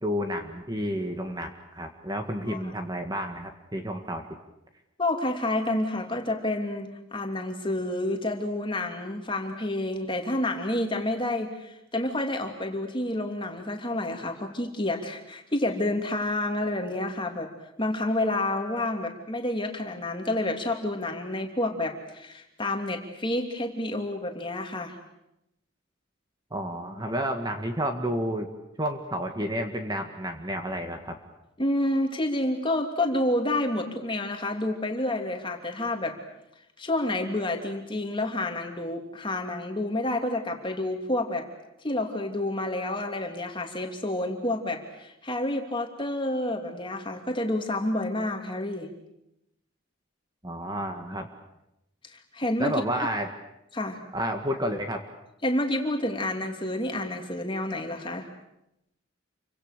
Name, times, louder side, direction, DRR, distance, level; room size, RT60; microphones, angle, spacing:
voice 1, 0.0-4.2 26.5-28.5 28.8-31.2 50.4-51.3 52.6-53.3 54.1-55.0, equal, 20° right, 5 dB, 1.8 m, -30 dB
voice 2, 5.0-17.5 17.8-25.0 31.6-36.2 36.8-41.5 41.8-48.9 52.1-52.7 53.7-54.0 55.4-58.3, left 1 dB, 25° left, 3 dB, 2.9 m, -29 dB
28.5 x 24.5 x 6.8 m, 0.86 s
head